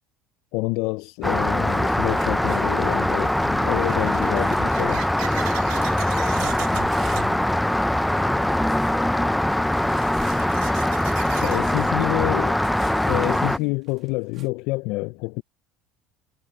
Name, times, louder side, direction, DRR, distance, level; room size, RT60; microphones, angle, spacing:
voice 1, 0.5-5.1 11.4-12.6 13.1-15.4, left 22 dB, 70° left, 0.4 m, -27 dB
Rain, 1.2-13.6, left 1 dB, 5° left, 0.4 m, -22 dB
sound 1, 1.2-1.3 2.1-11.6, right 22 dB, 80° right, 3.1 m, -39 dB
sound 2, 1.6-5.1 5.4-5.7 6.0-7.4 7.7-8.3 8.6-9.1 9.7-14.5, right 10 dB, 40° right, 1.2 m, -48 dB
voice 2, 5.1-10.0 11.2-11.9 12.9-13.7, left 10 dB, 40° left, 1.2 m, -43 dB
cardioid pair, 145°, 0 cm